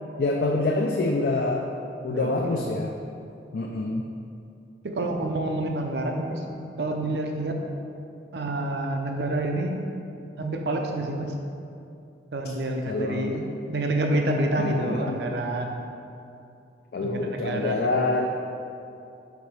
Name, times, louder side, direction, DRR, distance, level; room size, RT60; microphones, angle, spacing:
voice 1, 0.2-1.7 2.0-2.9 3.5-4.0 12.9-13.4 14.6-15.2 16.9-18.4, left 2 dB, 60° left, 1 dB, 0.4 m, -26 dB
voice 2, 2.1-2.6 4.8-6.4 6.8-7.6 8.3-9.8 10.4-11.4 12.3-15.8 17.0-18.1, right 1 dB, 65° right, 3 dB, 0.6 m, -28 dB
4.7 x 3.9 x 5.4 m, 2.6 s
head